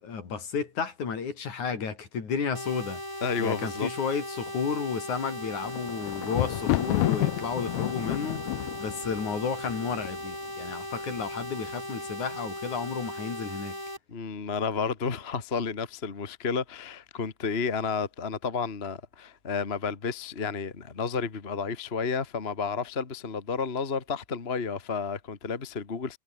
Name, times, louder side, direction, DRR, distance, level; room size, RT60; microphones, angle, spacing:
voice 1, 0.0-3.0 3.4-13.8, left 6 dB, 65° left, 5.0 m, -32 dB
sound 1, 2.5-14.0, equal, 5° left, 7.7 m, -38 dB
voice 2, 3.2-3.9 14.1-26.2, left 5 dB, 25° left, 1.5 m, -31 dB
Thunder, 5.3-10.5 11.2-11.7 12.0-12.1, left 19 dB, 90° left, 1.5 m, -30 dB
omnidirectional pair, 3.7 m